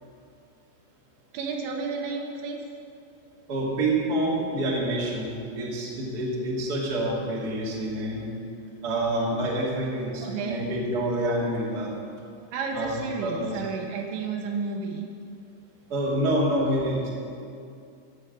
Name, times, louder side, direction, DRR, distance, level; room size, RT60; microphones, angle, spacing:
voice 1, 1.3-2.6 10.2-10.6 12.5-15.1, right 4 dB, 75° right, 1 dB, 3.3 m, -31 dB
voice 2, 3.5-5.3 5.6-8.3 8.8-11.9 12.7-13.6 15.9-17.1, right 1 dB, 30° right, -5 dB, 2.1 m, -27 dB
14.0 x 7.2 x 8.1 m, 2.5 s
omnidirectional pair, 5.4 m